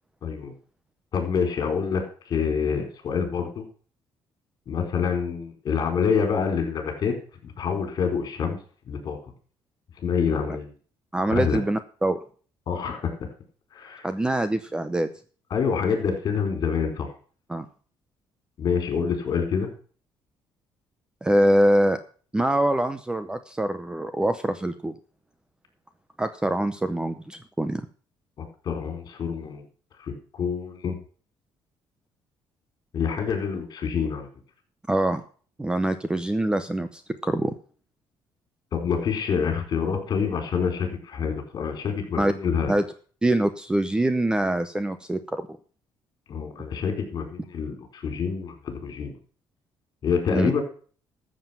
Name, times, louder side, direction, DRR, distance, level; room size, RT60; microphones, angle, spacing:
voice 1, 0.2-0.5 1.1-3.6 4.7-7.2 7.4-8.6 8.9-9.2 10.0-10.7 11.3-11.6 12.7-13.1 13.7-14.0 15.5-17.1 18.6-19.7 28.4-29.6 30.0-31.0 32.9-34.3 38.7-42.7 46.3-49.2 50.0-50.6, left 6 dB, 45° left, 4 dB, 4.3 m, -27 dB
voice 2, 11.1-12.2 14.0-15.1 17.5-17.7 21.2-22.0 22.3-25.0 26.2-27.9 34.9-35.2 35.6-37.5 42.2-42.3 42.7-42.8 43.2-45.5 50.3-50.5, right 1 dB, 10° right, 11 dB, 0.7 m, -24 dB
13.5 x 7.5 x 5.8 m, 0.42 s
cardioid pair, 150°, 9 cm